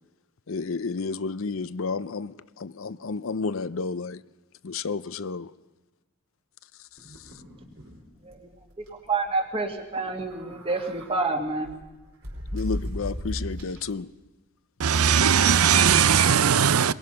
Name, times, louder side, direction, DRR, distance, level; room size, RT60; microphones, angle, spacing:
voice 1, 0.5-4.2 4.6-5.5 12.5-14.1, left 4 dB, 65° left, 0.6 m, -31 dB
sound 1, 7.0-8.0 8.3-8.4 8.7-8.9 10.1-11.1 11.6-13.9, left 1 dB, 60° right, 4.8 m, -36 dB
voice 2, 9.1-11.8, right 3 dB, 25° right, 2.2 m, -28 dB
voice 3, 14.8-16.9, right 7 dB, 85° right, 0.6 m, -19 dB
22.0 x 21.5 x 5.7 m
head